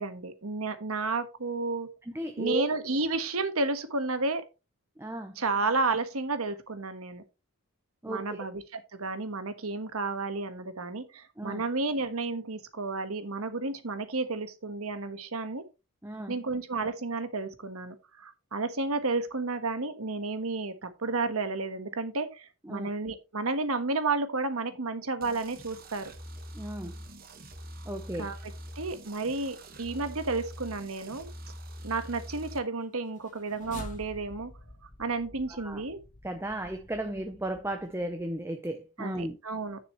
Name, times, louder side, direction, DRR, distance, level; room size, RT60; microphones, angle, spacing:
voice 1, 0.0-1.9 2.4-4.4 5.4-7.2 8.1-15.6 16.3-26.1 28.2-28.4 28.7-31.3 31.8-34.5 35.0-36.0 39.0-39.8, right 3 dB, 80° right, 1.4 m, -32 dB
voice 2, 2.0-2.7 5.0-5.4 8.0-8.4 11.4-11.6 16.0-16.3 22.6-22.9 26.5-27.0 27.8-28.3 35.5-35.8 36.2-39.4, right 1 dB, 10° right, 0.7 m, -35 dB
sound 1, 25.2-32.6, equal, 40° right, 1.4 m, -44 dB
sound 2, 33.1-38.4, left 1 dB, 35° left, 1.5 m, -48 dB
9.8 x 6.9 x 3.1 m
head